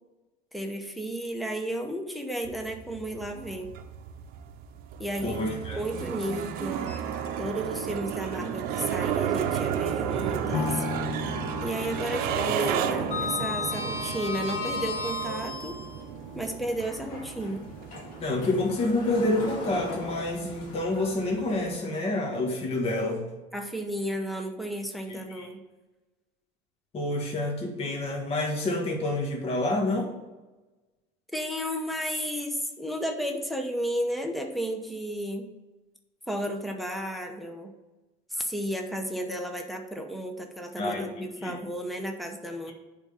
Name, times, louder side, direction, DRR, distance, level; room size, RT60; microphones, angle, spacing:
voice 1, 0.5-3.7 5.0-5.4 5.8-6.9 7.4-10.8 11.6-15.8 16.3-17.7 23.5-25.6 31.3-35.5 36.3-37.8 38.3-42.7, equal, ahead, 3 dB, 0.9 m, -33 dB
sound 1, 2.4-21.8, right 9 dB, 65° right, 0.7 m, -33 dB
voice 2, 5.2-5.8 18.2-23.3 25.3-25.5 26.9-30.1 40.8-41.1 41.4-41.5, left 2 dB, 35° left, 0 dB, 1.7 m, -28 dB
Sliding door, 6.8-7.8 8.1-8.3 10.0-11.0 11.3-11.7 11.9-16.0 16.7-21.9, left 3 dB, 55° left, 1.9 m, -37 dB
sound 2, 10.5-18.6 19.1-19.2, left 6 dB, 80° left, 0.8 m, -39 dB
8.9 x 3.8 x 7.0 m, 1.1 s
cardioid pair, 150°, 17 cm